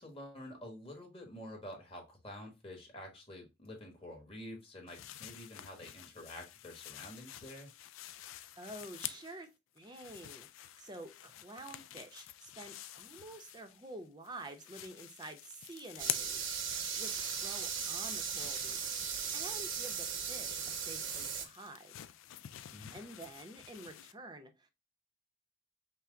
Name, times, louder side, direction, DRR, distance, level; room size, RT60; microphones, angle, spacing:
voice 1, 0.0-7.7 22.7-22.9, left 1 dB, 25° left, 1 dB, 1.3 m, -48 dB
sound 1, 4.9-9.4 9.8-13.9 14.2-24.1, left 13 dB, 80° left, 0.4 m, -48 dB
voice 2, 8.6-9.5 9.7-18.9 19.3-21.9 22.9-24.7, right 2 dB, 20° right, 6 dB, 0.6 m, -49 dB
sound 2, 16.0-21.4, right 6 dB, 75° right, 0.9 m, -37 dB
5.7 x 2.1 x 3.8 m, 0.24 s
head